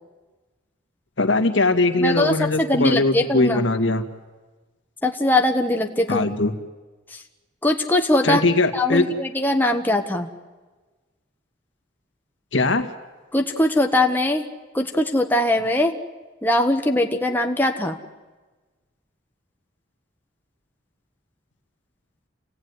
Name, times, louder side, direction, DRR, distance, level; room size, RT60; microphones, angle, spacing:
voice 1, 1.2-4.0 6.1-6.5 8.2-9.1 12.5-12.9, left 2 dB, 75° left, 6 dB, 2.0 m, -20 dB
voice 2, 2.0-3.6 5.0-6.3 7.1-7.2 7.6-8.4 8.7-10.3 13.3-14.4 14.7-15.9 16.4-18.0, left 1 dB, 10° left, 3 dB, 1.4 m, -21 dB
29.0 x 17.5 x 9.7 m, 1.3 s
head